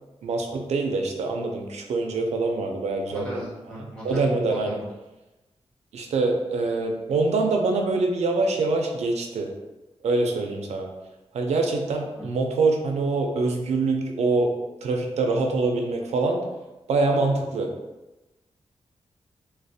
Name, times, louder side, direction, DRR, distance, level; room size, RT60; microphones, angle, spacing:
voice 1, 0.2-3.3 3.8-4.8 5.9-9.5 10.0-10.9 11.3-14.5 14.8-16.4 16.9-17.7, right 3 dB, 85° right, 2 dB, 0.4 m, -24 dB
voice 2, 3.1-4.8 12.2-12.3, equal, 10° left, -8 dB, 0.9 m, -38 dB
2.4 x 2.0 x 2.6 m, 1.1 s
wide cardioid pair, 180°, 11 cm